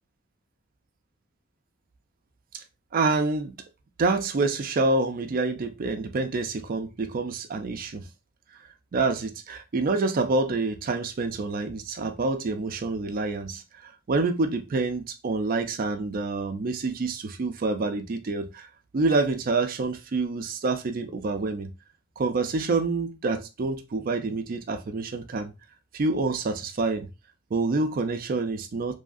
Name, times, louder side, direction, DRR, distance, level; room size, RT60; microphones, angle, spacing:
voice 1, 2.9-3.5 4.0-8.1 8.9-18.7 18.9-21.7 22.2-25.5 25.9-27.1 27.5-28.9, right 3 dB, 45° right, 0.4 m, -27 dB
2.7 x 2.4 x 2.5 m
head